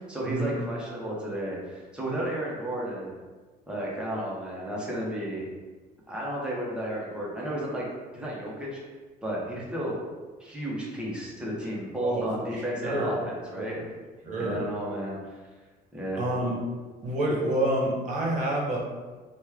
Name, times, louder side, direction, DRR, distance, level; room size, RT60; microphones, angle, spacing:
voice 1, 0.1-3.1 3.7-5.5 6.1-7.9 8.1-8.8 9.2-10.0 10.4-13.8 14.4-15.4 15.9-16.2, right 1 dB, 5° right, -5 dB, 0.9 m, -32 dB
voice 2, 12.5-13.2 13.6-13.8 14.2-14.6 16.2-16.6 17.0-18.8, right 1 dB, 45° right, -3 dB, 0.9 m, -28 dB
3.0 x 2.3 x 3.5 m, 1.3 s
cardioid pair, 110°, 17 cm